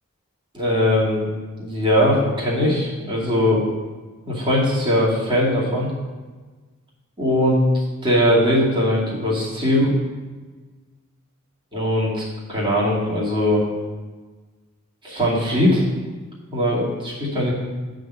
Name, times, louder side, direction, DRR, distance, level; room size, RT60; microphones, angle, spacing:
voice 1, 0.5-1.3 1.6-3.6 4.3-5.9 7.2-9.9 11.7-12.2 12.5-13.6 15.0-15.8 16.5-17.5, left 1 dB, 25° right, -7 dB, 2.4 m, -20 dB
8.8 x 3.9 x 7.1 m, 1.3 s
head